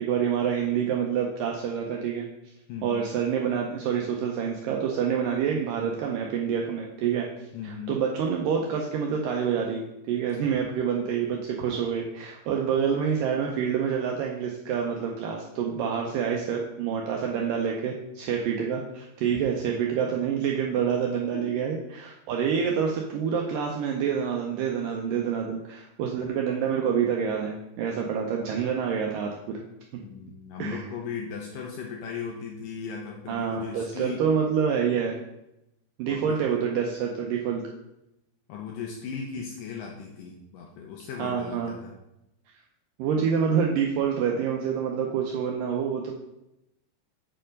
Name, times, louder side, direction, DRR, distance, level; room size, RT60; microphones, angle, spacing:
voice 1, 0.0-2.3 2.8-7.3 7.6-9.8 10.1-29.6 30.6-30.8 33.3-35.2 36.0-37.6 41.2-41.7 43.0-46.1, right 7 dB, 85° right, 0 dB, 1.9 m, -27 dB
voice 2, 2.7-3.0 7.5-8.0 15.8-15.9 19.3-19.4 21.3-21.5 30.0-34.2 36.1-36.4 38.5-41.9, left 6 dB, 80° left, 0 dB, 2.0 m, -37 dB
7.5 x 4.4 x 5.2 m, 0.88 s
omnidirectional pair, 4.6 m